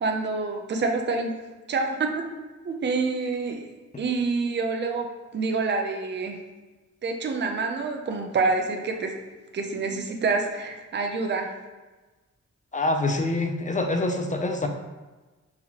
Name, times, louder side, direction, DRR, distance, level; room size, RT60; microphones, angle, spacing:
voice 1, 0.0-1.3 1.7-2.3 2.6-3.7 4.0-6.4 7.0-9.1 9.5-11.5, right 4 dB, 35° right, 3 dB, 0.4 m, -27 dB
voice 2, 12.7-14.7, left 2 dB, 25° left, 4 dB, 0.4 m, -25 dB
4.0 x 2.9 x 2.8 m, 1.2 s
wide cardioid pair, 105°, 30 cm